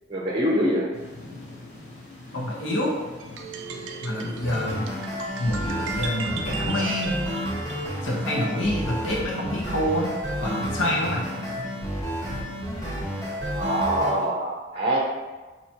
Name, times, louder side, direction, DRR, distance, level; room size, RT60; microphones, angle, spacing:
voice 1, 0.1-0.9 13.5-15.0, right 1 dB, 30° right, -2 dB, 0.6 m, -24 dB
sound 1, 0.9-14.3, left 2 dB, 40° left, 0.9 m, -43 dB
voice 2, 2.3-3.0 4.0-4.9 5.4-7.3 8.0-10.1 10.4-11.3, left 1 dB, 85° left, -4 dB, 1.1 m, -27 dB
sound 2, 3.2-8.0, right 4 dB, 75° right, 0.4 m, -36 dB
sound 3, 4.4-14.1, equal, 15° left, 1.1 m, -31 dB
4.8 x 2.9 x 2.9 m, 1.2 s
head